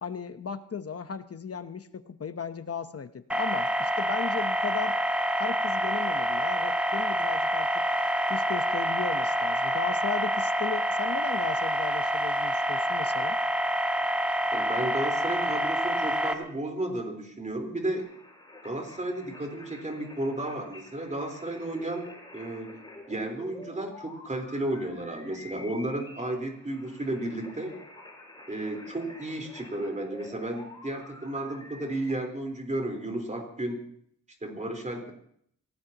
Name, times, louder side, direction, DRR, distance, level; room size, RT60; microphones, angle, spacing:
voice 1, 0.0-5.0 5.4-7.9 8.3-13.4, left 6 dB, 50° left, 10 dB, 1.0 m, -36 dB
sound 1, 3.3-16.3, equal, 5° right, 1.7 m, -27 dB
voice 2, 14.5-18.0 18.6-22.1 22.3-22.7 23.1-27.7 28.5-33.8 34.4-35.1, right 1 dB, 25° right, 3 dB, 4.1 m, -33 dB
sound 2, 18.0-32.1, left 2 dB, 15° left, 5.4 m, -49 dB
26.5 x 18.5 x 2.9 m, 0.66 s
wide cardioid pair, 115°, 30 cm